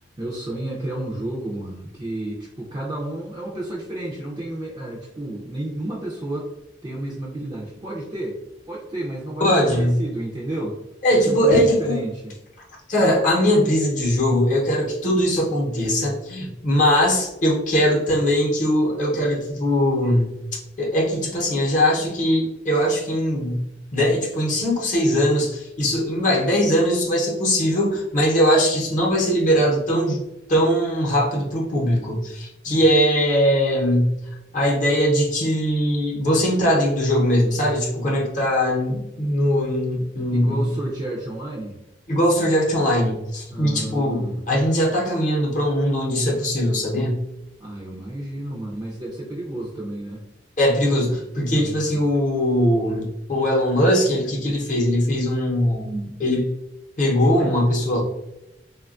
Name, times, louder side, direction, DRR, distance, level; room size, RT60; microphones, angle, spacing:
voice 1, 0.0-6.5 6.8-8.4 8.7-10.8 11.1-12.4 32.6-32.9 40.0-40.1 40.4-41.8 43.5-44.4 47.6-50.2 51.5-52.1, right 1 dB, 25° right, -4 dB, 0.4 m, -31 dB
voice 2, 9.4-10.0 11.0-12.0 12.9-20.4 20.8-23.6 23.9-30.2 30.5-34.2 34.5-40.8 42.1-47.2 50.6-56.5 57.0-58.0, equal, 45° left, -2 dB, 0.7 m, -20 dB
3.2 x 2.2 x 2.4 m, 0.91 s
head